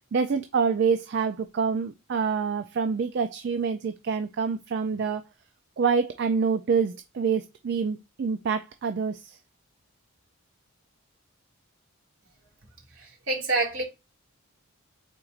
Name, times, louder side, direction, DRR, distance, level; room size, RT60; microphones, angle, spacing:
voice 1, 0.1-5.2 5.8-9.4, right 5 dB, 50° right, 0.3 m, -26 dB
voice 2, 13.0-13.8, right 3 dB, 70° right, 2.1 m, -27 dB
4.4 x 3.9 x 2.4 m
head